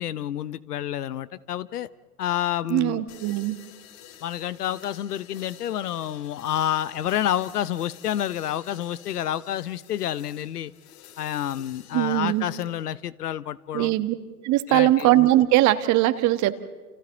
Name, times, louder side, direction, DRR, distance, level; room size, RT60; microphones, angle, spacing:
voice 1, 0.0-1.9 2.2-3.0 4.2-10.7 11.2-13.9 14.7-15.1, left 11 dB, 75° left, 18 dB, 0.9 m, -29 dB
voice 2, 2.7-3.6 11.9-12.5 13.7-14.1 14.4-16.6, right 15 dB, 40° right, 11 dB, 1.5 m, -20 dB
sound 1, 3.1-12.9, left 10 dB, 50° left, 6.5 m, -50 dB
29.5 x 29.0 x 4.0 m, 1.4 s
hypercardioid pair, 100°, 47 cm